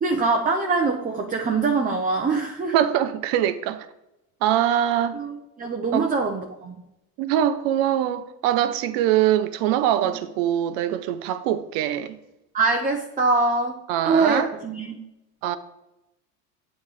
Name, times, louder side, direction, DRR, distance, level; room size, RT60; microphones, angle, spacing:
voice 1, 0.0-2.7 5.1-6.8 12.5-13.8 14.0-15.0, right 3 dB, 20° right, 0.6 m, -23 dB
voice 2, 2.7-3.9 4.4-5.2 5.9-6.1 7.2-12.2 13.9-14.5 15.4-15.6, right 11 dB, 60° right, 0.7 m, -23 dB
8.2 x 3.1 x 4.9 m
hypercardioid pair, 90°, 48 cm